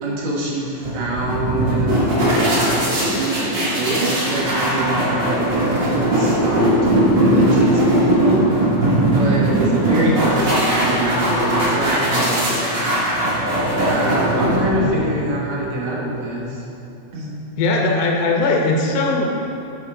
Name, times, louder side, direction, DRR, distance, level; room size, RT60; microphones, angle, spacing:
voice 1, 0.0-2.0 2.9-5.8 6.1-6.8 7.2-8.4 9.0-12.8 13.7-16.6 17.1-17.3, right 1 dB, 65° right, -4 dB, 2.6 m, -25 dB
sound 1, 0.8-15.2, right 1 dB, 40° right, 2.3 m, -19 dB
voice 2, 9.9-10.2 17.6-19.3, left 3 dB, 80° left, 0 dB, 2.3 m, -19 dB
9.0 x 7.7 x 3.7 m, 2.7 s
omnidirectional pair, 3.5 m